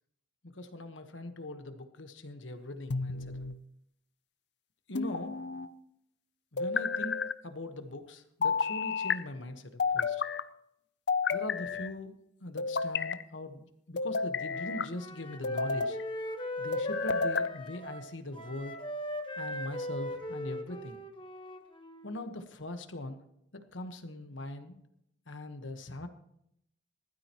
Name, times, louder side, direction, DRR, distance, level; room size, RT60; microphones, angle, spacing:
voice 1, 0.4-3.2 4.9-5.4 6.5-7.2 7.4-10.2 11.3-12.1 12.4-16.0 16.6-18.8 19.4-21.0 22.0-23.2 23.5-24.8 25.3-26.1, left 1 dB, 85° left, 8 dB, 1.3 m, -41 dB
sound 1, 2.9-3.6 4.9-5.7 6.6-7.3 8.4-9.2 9.8-10.4 11.1-11.9 12.6-13.2 14.0-14.9 15.4-16.0 16.7-17.5, left 5 dB, 60° left, 0.6 m, -31 dB
Wind instrument woodwind instrument, 14.5-22.2, left 1 dB, 25° left, 1.3 m, -39 dB
20.0 x 13.0 x 3.1 m, 0.76 s
head